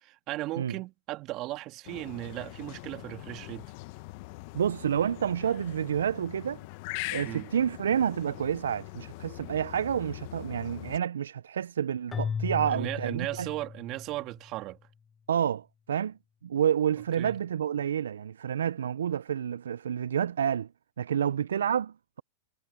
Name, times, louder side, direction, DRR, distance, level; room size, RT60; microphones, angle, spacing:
voice 1, 0.0-3.7 7.2-7.5 12.6-14.8 17.2-17.4, right 18 dB, 45° right, 1.9 m, -36 dB
sound 1, 1.9-11.0, left 24 dB, 55° left, 1.1 m, -42 dB
voice 2, 4.5-6.6 7.1-13.5 15.3-16.2 16.4-20.7 21.0-22.2, right 9 dB, 80° right, 0.5 m, -29 dB
Keyboard (musical), 12.1-14.4, left 6 dB, 20° left, 0.7 m, -36 dB
hypercardioid pair, 110°, 0 cm